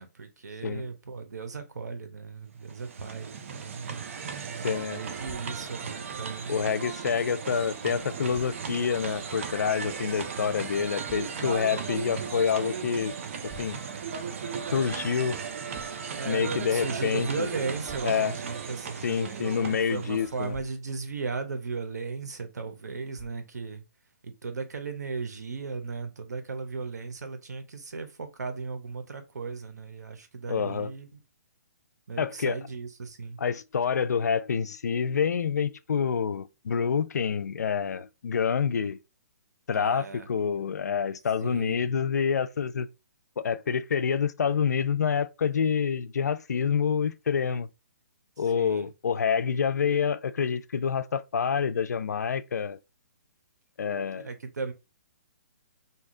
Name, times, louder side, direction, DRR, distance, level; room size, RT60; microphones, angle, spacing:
voice 1, 0.0-4.0 4.8-6.8 16.2-23.8 24.2-31.1 32.1-33.4 39.7-40.3 41.4-41.9 48.4-48.9 54.1-54.7, right 4 dB, 85° right, 0.8 m, -36 dB
sound 1, 2.5-20.6, right 6 dB, 50° right, 0.5 m, -36 dB
voice 2, 4.6-5.0 6.5-13.1 13.6-13.8 14.7-15.4 16.2-17.5 18.0-18.3 19.0-20.5 30.5-30.9 32.2-32.6 33.4-39.0 39.7-42.9 43.4-47.7 48.4-52.8 53.8-54.3, left 7 dB, 90° left, 0.4 m, -27 dB
Thump thud, 13.5-13.8 15.7-16.0 17.9-18.2 20.2-20.8 23.2-23.5, right 2 dB, 15° right, 1.5 m, -49 dB
2.7 x 2.3 x 3.6 m
hypercardioid pair, 155°, 9 cm